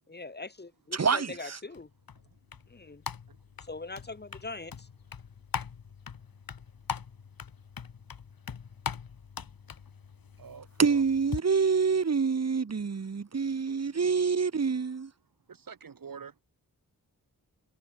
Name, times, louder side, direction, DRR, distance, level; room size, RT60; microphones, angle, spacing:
voice 1, 0.1-1.9 2.7-3.0 3.6-4.9, left 3 dB, 30° left, 2.7 m, -42 dB
voice 2, 0.9-1.6 10.8-15.1, right 5 dB, 45° right, 2.0 m, -27 dB
sound 1, 1.7-11.4, left 6 dB, 80° left, 3.4 m, -41 dB
voice 3, 10.4-11.0 12.3-12.4 12.7-12.9 15.5-16.3, right 6 dB, 70° right, 4.0 m, -46 dB
wide cardioid pair, 135°, 35 cm